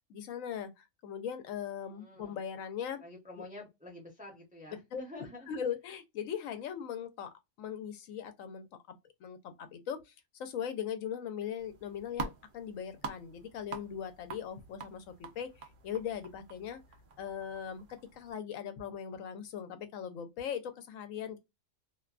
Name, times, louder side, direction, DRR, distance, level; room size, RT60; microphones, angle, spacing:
voice 1, 0.1-3.0 4.7-7.3 7.6-10.1 10.4-16.8 17.2-21.4, left 8 dB, 75° left, 1.0 m, -40 dB
voice 2, 1.8-2.4 3.0-5.5, left 1 dB, 10° right, 0.6 m, -48 dB
sound 1, 11.6-18.3, right 5 dB, 55° right, 0.6 m, -46 dB
2.6 x 2.1 x 2.3 m
omnidirectional pair, 1.4 m